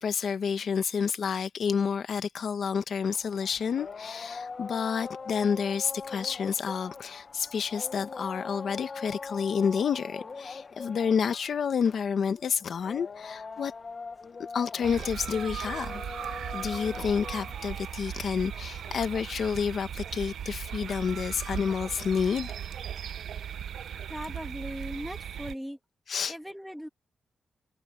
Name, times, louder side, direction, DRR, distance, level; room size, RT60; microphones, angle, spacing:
voice 1, 0.0-13.7 14.5-16.0 16.5-22.5 26.1-26.3, left 6 dB, 55° left, 1.2 m, -29 dB
sound 1, 3.0-19.4, left 4 dB, 35° left, 0.8 m, -43 dB
sound 2, 14.8-25.5, right 9 dB, 70° right, 0.5 m, -38 dB
voice 2, 24.1-25.8 26.3-26.9, equal, ahead, 2.0 m, -38 dB
wide cardioid pair, 170°, 0 cm